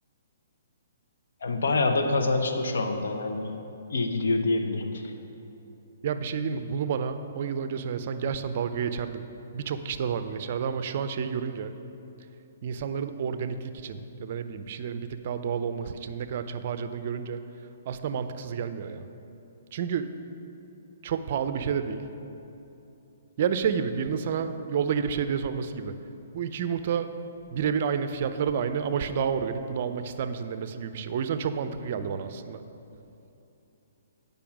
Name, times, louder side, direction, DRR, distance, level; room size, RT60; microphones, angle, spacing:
voice 1, 1.4-3.5 3.9-5.0, left 3 dB, 70° left, 4 dB, 0.9 m, -26 dB
voice 2, 6.0-9.3 9.5-11.7 12.6-17.4 17.9-19.1 19.7-20.1 21.0-22.0 23.4-26.0 26.3-27.2 27.5-32.6, right 7 dB, 50° right, 10 dB, 0.5 m, -30 dB
8.5 x 5.3 x 6.2 m, 2.8 s
hypercardioid pair, 135°, 0 cm